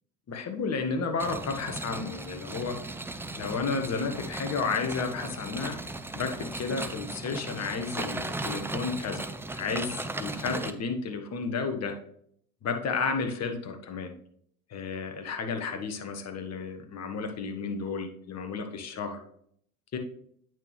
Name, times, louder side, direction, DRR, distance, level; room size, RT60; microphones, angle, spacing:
voice 1, 0.3-2.8 3.4-5.8 6.1-9.3 9.5-12.0 12.6-14.1 14.7-19.2 19.9-20.0, left 4 dB, 35° left, 5 dB, 1.3 m, -32 dB
sound 1, 1.2-10.7, right 2 dB, 5° right, 0.5 m, -37 dB
9.0 x 6.1 x 3.2 m, 0.66 s
hypercardioid pair, 70°, 45 cm